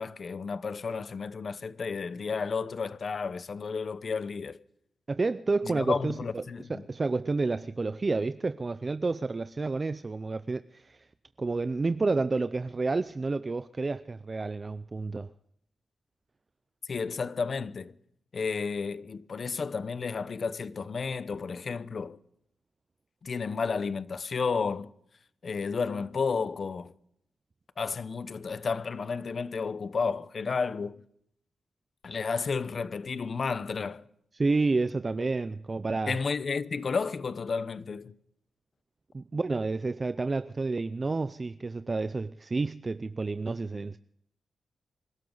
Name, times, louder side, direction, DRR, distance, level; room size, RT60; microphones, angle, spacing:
voice 1, 0.0-4.6 5.6-6.8 16.9-17.9 18.3-22.2 23.2-24.9 25.4-26.9 27.8-31.0 32.0-34.0 36.1-38.1, left 5 dB, 55° left, 0.8 m, -32 dB
voice 2, 5.1-6.4 6.7-11.0 11.4-15.3 34.3-36.2 39.1-44.0, right 3 dB, 35° right, 0.5 m, -30 dB
27.5 x 12.5 x 3.9 m
cardioid pair, 70°, 0 cm